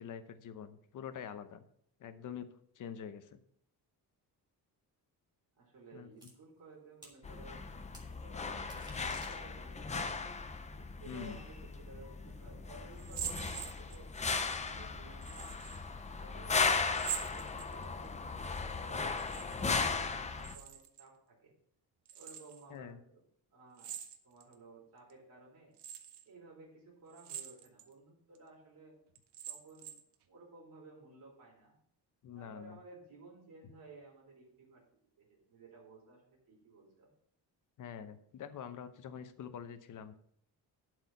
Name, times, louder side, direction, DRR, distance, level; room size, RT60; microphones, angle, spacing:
voice 1, 0.0-1.6 2.0-2.5 2.8-3.4 5.9-6.1 11.0-11.4 22.7-23.0 32.2-32.8 37.8-40.2, left 8 dB, 50° left, 11 dB, 0.8 m, -45 dB
voice 2, 5.6-7.6 8.1-10.3 10.7-14.1 14.6-15.5 16.1-21.5 22.1-23.2 23.5-23.9 24.2-25.7 26.2-29.0 29.4-30.0 30.3-31.7 32.3-34.8 35.2-37.1, right 3 dB, 55° right, -4 dB, 3.2 m, -56 dB
sound 1, 6.2-6.3 7.0-7.2 7.9-8.1 8.6-9.8, right 1 dB, 10° right, 1.7 m, -53 dB
sound 2, 7.2-20.5, left 4 dB, 20° left, 0.5 m, -37 dB
sound 3, 13.0-14.2 15.2-15.8 16.9-18.1 19.1-19.8 20.1-21.1 22.1-22.6 23.8-24.5 25.1-25.2 25.8-26.2 27.1-27.9 28.4-28.5 29.2-30.1, right 9 dB, 80° right, 1.1 m, -44 dB
11.5 x 4.8 x 5.4 m, 0.67 s
cardioid pair, 175°, 40 cm